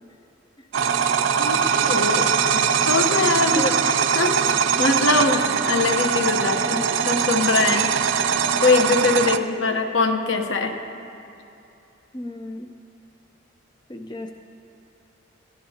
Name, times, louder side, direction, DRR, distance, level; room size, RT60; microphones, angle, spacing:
sound 1, 0.7-9.4, right 7 dB, 70° right, 0.5 m, -21 dB
voice 1, 1.4-3.7 4.1-7.9 8.6-10.8, left 3 dB, 70° left, 5 dB, 1.0 m, -22 dB
voice 2, 9.2-9.8 12.1-12.7 13.9-14.3, equal, 20° left, 4 dB, 0.4 m, -33 dB
21.0 x 14.0 x 2.9 m, 2.7 s
head